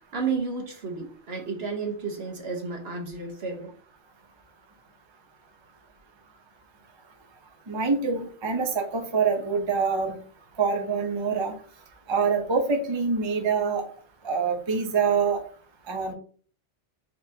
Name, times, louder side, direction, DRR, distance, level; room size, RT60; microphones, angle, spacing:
voice 1, 0.1-3.7, right 4 dB, 60° right, 2 dB, 1.3 m, -32 dB
voice 2, 7.7-10.2 10.6-11.5 12.1-13.8 14.2-15.4 15.9-16.1, right 5 dB, 30° right, 2 dB, 0.7 m, -25 dB
4.5 x 3.8 x 2.7 m, 0.43 s
omnidirectional pair, 1.2 m